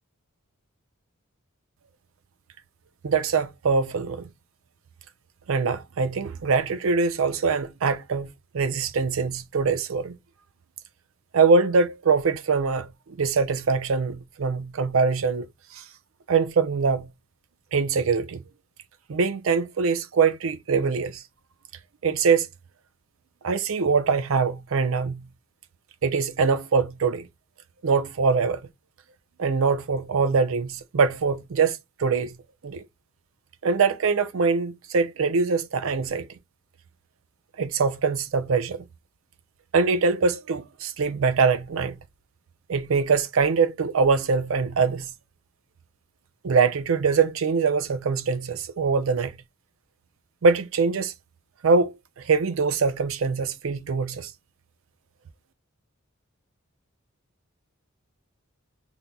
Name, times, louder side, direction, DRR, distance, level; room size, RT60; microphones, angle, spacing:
voice 1, 3.0-4.3 5.5-8.3 8.5-10.2 11.3-15.5 15.7-15.8 16.3-17.1 17.7-18.4 19.1-21.2 22.0-22.5 23.4-25.3 26.0-27.3 27.8-28.6 29.4-32.4 32.6-32.8 33.6-36.3 37.6-38.9 39.7-42.0 42.7-45.1 46.4-49.4 50.4-51.1 51.6-54.3, right 5 dB, 70° right, 0.5 m, -23 dB
5.4 x 2.1 x 2.3 m
head